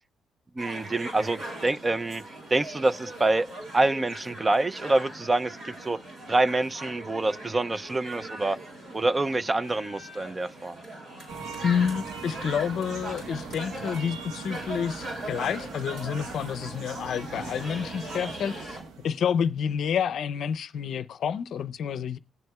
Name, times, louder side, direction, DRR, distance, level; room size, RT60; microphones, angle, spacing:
voice 1, 0.6-2.2 2.5-3.5 3.7-6.0 6.3-8.6 8.9-10.8, right 2 dB, 25° right, 0.4 m, -26 dB
sound 1, 0.6-18.8, right 1 dB, 60° right, 5.2 m, -41 dB
sound 2, 11.3-19.6, right 4 dB, 90° right, 1.2 m, -40 dB
voice 2, 11.6-18.8 19.0-22.2, left 7 dB, 65° left, 0.5 m, -29 dB
19.5 x 7.7 x 2.3 m
cardioid pair, 90°, 0 cm